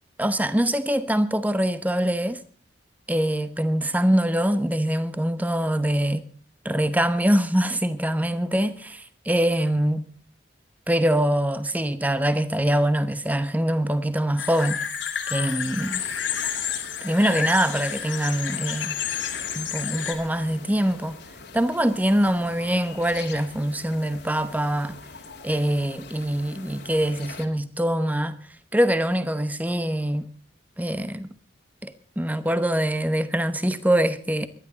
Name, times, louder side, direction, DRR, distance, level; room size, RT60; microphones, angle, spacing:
voice 1, 0.2-2.4 3.1-6.2 6.6-10.1 10.9-14.8 15.3-16.0 17.0-19.0 19.5-21.2 21.5-25.0 25.4-28.4 28.7-30.3 30.8-31.3 31.8-34.5, right 1 dB, 10° right, 0.9 m, -24 dB
sound 1, 14.4-20.1, left 8 dB, 90° left, 2.7 m, -30 dB
sound 2, 15.8-27.5, left 4 dB, 60° left, 2.1 m, -42 dB
22.5 x 11.0 x 4.0 m
head